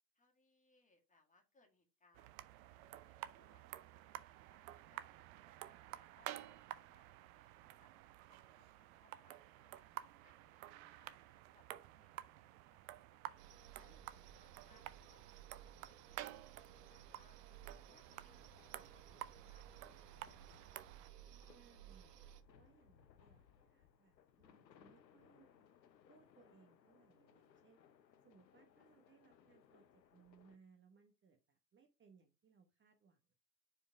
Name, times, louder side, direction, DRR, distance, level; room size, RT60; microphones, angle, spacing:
voice 1, 0.1-2.6 3.0-4.1 4.4-7.9 8.3-11.2 11.5-13.4 13.8-16.2 16.7-17.4 17.9-20.8 28.8-28.9, left 3 dB, 15° left, 2 dB, 2.0 m, -75 dB
sound 1, 2.1-21.1, right 15 dB, 55° right, 0.7 m, -53 dB
sound 2, 13.4-22.4, right 9 dB, 70° right, 1.0 m, -59 dB
sound 3, 17.4-30.6, left 8 dB, 80° left, 0.8 m, -68 dB
voice 2, 21.3-25.7 26.1-27.8 28.2-33.3, right 6 dB, 25° right, 5 dB, 1.0 m, -69 dB
5.0 x 4.7 x 4.7 m, 0.30 s
figure-of-eight pair, 75°, 50 cm